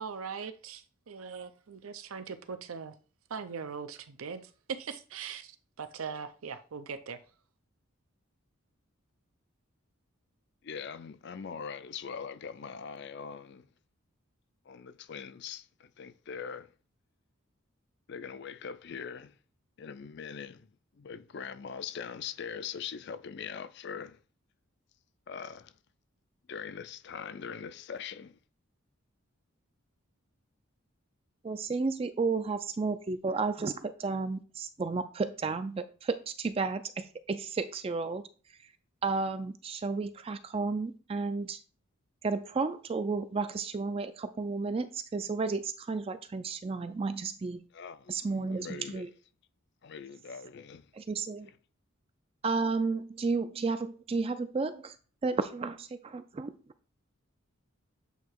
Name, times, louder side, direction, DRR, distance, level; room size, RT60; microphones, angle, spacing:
voice 1, 0.0-2.9 3.3-7.2, right 6 dB, 85° right, 0.6 m, -40 dB
voice 2, 10.6-13.7 14.7-16.7 18.1-19.3 19.8-20.7 21.0-24.2 25.3-25.7 26.5-28.4 47.7-49.1 49.8-50.9, left 6 dB, 55° left, 0.4 m, -42 dB
voice 3, 31.4-38.2 39.0-41.6 42.2-47.6 48.1-49.1 50.9-51.5 52.4-55.0 55.2-56.5, right 4 dB, 25° right, 0.3 m, -32 dB
8.1 x 2.8 x 4.5 m
head